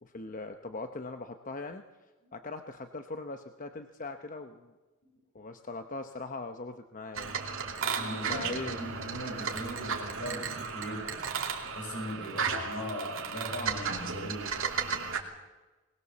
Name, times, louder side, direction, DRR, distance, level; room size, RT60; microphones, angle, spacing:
voice 1, 0.0-1.8 2.3-4.7 5.3-7.4 8.1-8.8, left 3 dB, 40° left, 7 dB, 0.9 m, -40 dB
sound 1, 7.1-15.2, right 5 dB, 65° right, 2.8 m, -34 dB
voice 2, 7.8-11.2 11.6-14.6, equal, 55° left, 0 dB, 7.6 m, -40 dB
21.0 x 20.5 x 7.2 m, 1.2 s
head